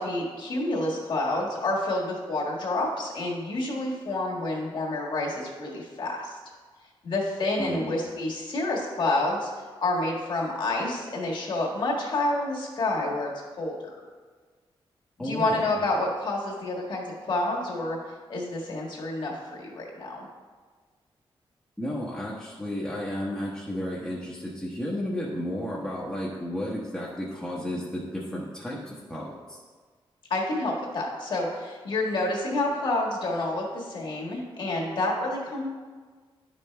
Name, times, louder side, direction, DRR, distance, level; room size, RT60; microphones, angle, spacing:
voice 1, 0.0-6.4 7.0-9.5 9.8-13.3 13.6-13.7 15.2-18.0 18.3-20.3 30.3-35.7, left 2 dB, 55° left, -2 dB, 1.6 m, -28 dB
voice 2, 7.6-7.9 15.2-15.7 21.8-29.6, equal, 5° left, -6 dB, 1.0 m, -33 dB
10.5 x 5.3 x 3.3 m, 1.5 s
wide cardioid pair, 155°, 9 cm